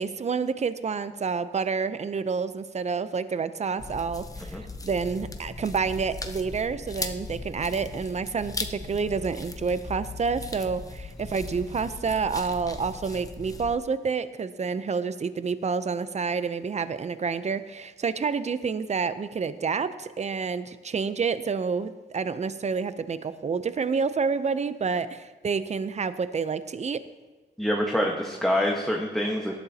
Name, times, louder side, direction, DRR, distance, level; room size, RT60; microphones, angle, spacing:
voice 1, 0.0-27.0, right 5 dB, 40° right, 13 dB, 0.6 m, -29 dB
sound 1, 3.8-13.7, left 3 dB, 20° left, 0.8 m, -38 dB
voice 2, 27.6-29.6, equal, ahead, -1 dB, 1.4 m, -26 dB
18.5 x 11.5 x 2.9 m, 1.2 s
cardioid pair, 85°, 19 cm